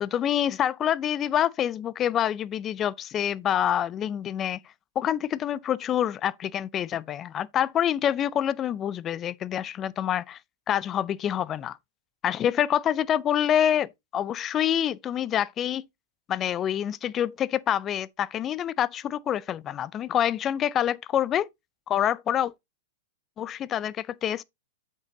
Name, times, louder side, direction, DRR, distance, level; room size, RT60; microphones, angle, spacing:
voice 1, 0.0-4.6 5.0-10.4 10.7-11.8 12.2-15.9 16.3-21.5 21.9-22.5 23.4-24.4, left 10 dB, 25° left, 0.5 m, -26 dB
8.2 x 5.5 x 3.8 m
hypercardioid pair, 120°, 0 cm